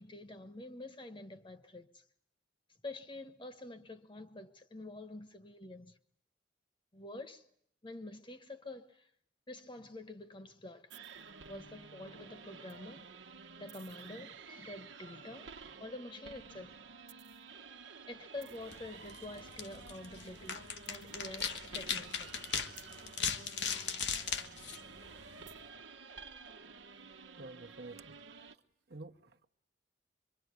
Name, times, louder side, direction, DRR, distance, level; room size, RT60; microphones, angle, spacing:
voice 1, 0.0-2.0 2.8-6.0 6.9-7.4 7.8-9.1 9.5-10.9 11.5-13.1 13.6-15.5 15.8-16.8 18.1-22.3 23.7-24.1, left 2 dB, 25° left, 1.2 m, -47 dB
sound 1, 10.9-28.6, right 5 dB, 80° right, 1.2 m, -52 dB
sound 2, 18.6-25.5, left 7 dB, 70° left, 1.5 m, -39 dB
voice 2, 27.4-28.2 28.9-29.4, right 2 dB, 60° right, 1.1 m, -49 dB
25.5 x 24.0 x 9.6 m
head